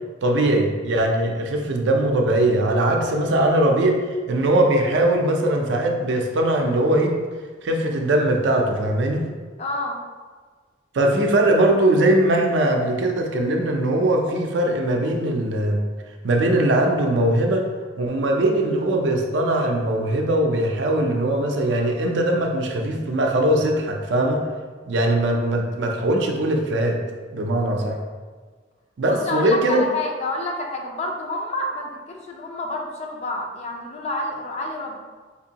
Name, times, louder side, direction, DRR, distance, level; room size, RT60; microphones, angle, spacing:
voice 1, 0.2-4.0 4.3-7.1 7.6-9.2 10.9-15.8 16.2-17.7 18.0-24.5 24.9-27.0 27.3-28.0 29.0-29.8, right 1 dB, 65° right, 2 dB, 0.5 m, -20 dB
voice 2, 9.6-10.0 29.1-35.0, left 2 dB, 35° left, 1 dB, 0.5 m, -28 dB
4.3 x 2.6 x 2.8 m, 1.4 s
head